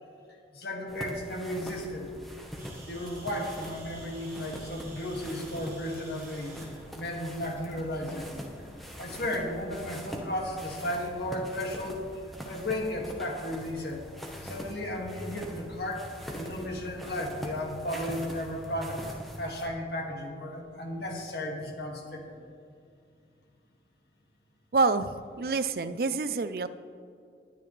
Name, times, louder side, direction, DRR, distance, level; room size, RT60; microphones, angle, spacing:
voice 1, 0.5-2.1 2.9-6.6 7.0-8.3 9.0-12.1 12.4-14.0 14.4-16.1 16.3-19.0 19.4-22.4, left 1 dB, 65° left, 0 dB, 2.2 m, -34 dB
sound 1, 0.9-19.7, equal, ahead, 1.1 m, -43 dB
sound 2, 2.6-10.0, right 1 dB, 15° right, 3.4 m, -52 dB
voice 2, 24.7-25.1 25.4-26.7, right 4 dB, 55° right, 12 dB, 0.5 m, -27 dB
19.0 x 9.8 x 3.3 m, 2.3 s
head